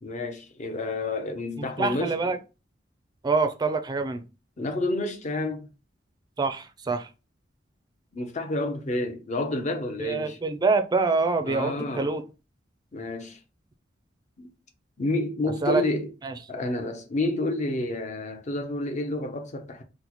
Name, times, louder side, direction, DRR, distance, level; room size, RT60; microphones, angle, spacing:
voice 1, 0.0-2.3 4.6-5.7 8.1-10.4 11.4-12.1 12.9-13.4 14.4-14.5 15.0-16.1 16.5-19.8, left 2 dB, 40° left, 0.6 m, -29 dB
voice 2, 1.8-2.4 3.2-4.2 6.4-7.1 10.0-12.2 15.6-15.8 16.2-16.3, right 4 dB, 25° right, 0.4 m, -25 dB
4.0 x 2.1 x 2.9 m
head